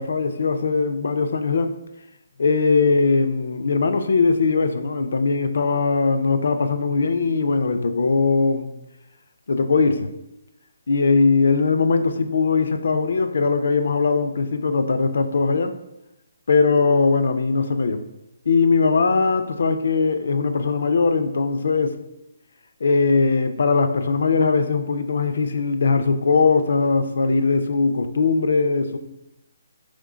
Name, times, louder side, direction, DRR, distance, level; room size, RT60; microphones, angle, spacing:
voice 1, 0.0-1.7 2.4-8.7 9.5-10.1 10.9-15.8 16.5-18.0 18.5-22.0 22.8-29.0, left 4 dB, 70° left, 9 dB, 0.4 m, -20 dB
3.6 x 3.4 x 3.7 m, 0.89 s
hypercardioid pair, 160°, 0 cm